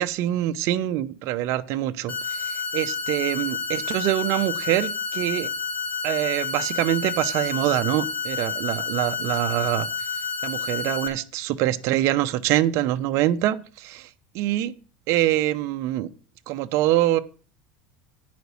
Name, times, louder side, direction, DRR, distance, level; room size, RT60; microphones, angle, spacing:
voice 1, 0.0-5.5 6.0-9.9 10.4-14.1 14.3-14.7 15.1-16.1 16.5-17.2, right 14 dB, 60° right, 0.7 m, -24 dB
sound 1, 2.1-11.1, left 5 dB, 25° left, 2.0 m, -30 dB
9.2 x 5.2 x 6.9 m
supercardioid pair, 120°, 6 cm